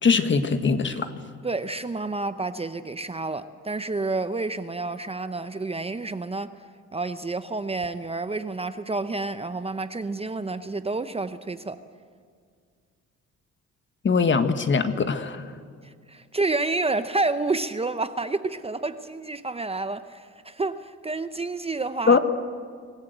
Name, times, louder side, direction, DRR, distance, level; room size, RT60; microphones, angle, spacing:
voice 1, 0.0-1.1 14.0-15.4 22.1-22.2, left 5 dB, 40° left, 9 dB, 1.5 m, -21 dB
voice 2, 1.4-6.5 6.9-11.8 15.8-22.2, right 3 dB, 20° right, 11 dB, 0.8 m, -29 dB
25.5 x 15.5 x 8.0 m, 2.1 s
cardioid pair, 90°, 30 cm